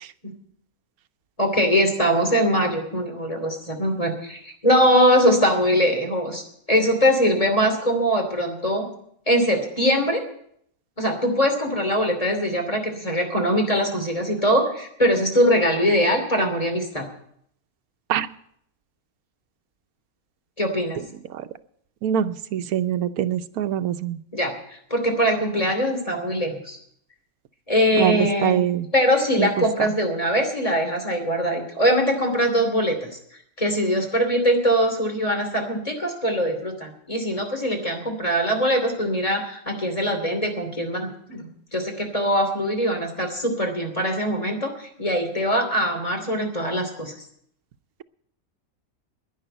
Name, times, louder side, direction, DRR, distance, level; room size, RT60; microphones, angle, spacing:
voice 1, 1.4-6.4 6.7-8.9 9.3-10.2 11.0-17.1 20.6-21.0 24.3-26.8 27.7-28.6 28.9-33.1 33.6-47.1, equal, 25° left, 3 dB, 2.9 m, -22 dB
voice 2, 22.0-24.2 28.0-28.9 29.4-29.5, right 10 dB, 90° right, 11 dB, 1.2 m, -23 dB
11.0 x 10.5 x 8.9 m, 0.69 s
omnidirectional pair, 1.5 m